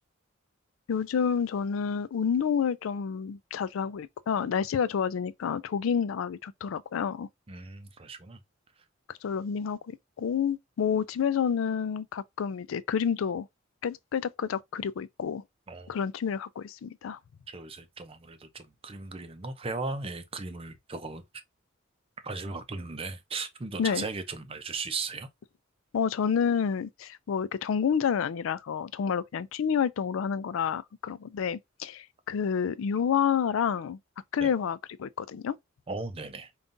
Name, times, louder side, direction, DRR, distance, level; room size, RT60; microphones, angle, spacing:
voice 1, 0.9-7.3 9.1-13.5 13.8-15.4 15.9-17.2 23.8-24.1 25.9-34.0 34.3-35.6, left 7 dB, 80° left, 0.4 m, -29 dB
voice 2, 7.5-8.4 15.7-15.9 17.5-21.2 22.2-25.3 34.4-34.5 35.9-36.5, right 3 dB, 30° right, 0.5 m, -37 dB
5.2 x 2.4 x 2.6 m
head